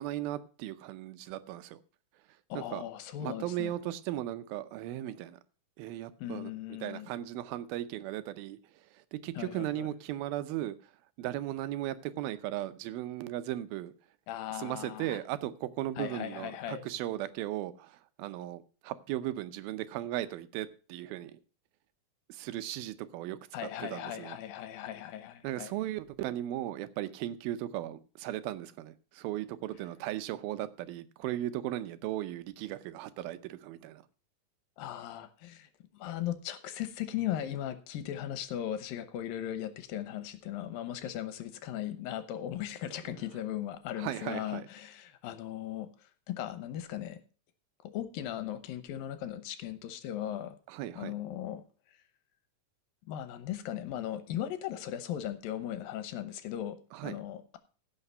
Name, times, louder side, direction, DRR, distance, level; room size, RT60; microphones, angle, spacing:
voice 1, 0.0-1.8 2.5-2.8 3.2-5.4 5.8-6.5 6.8-8.6 8.9-10.8 11.2-13.9 14.5-21.3 22.3-23.4 23.8-24.4 25.4-34.0 44.0-44.7 50.7-51.1 56.9-57.2, right 13 dB, 90° right, 2.6 m, -37 dB
voice 2, 2.5-3.8 6.2-7.1 9.4-9.9 14.3-15.2 16.0-16.8 23.5-25.7 34.8-35.7 36.0-45.9 46.3-47.2 47.8-50.6 51.0-51.6 53.1-56.8 57.0-57.6, left 11 dB, 80° left, 2.7 m, -38 dB
16.0 x 5.8 x 5.4 m
omnidirectional pair, 4.2 m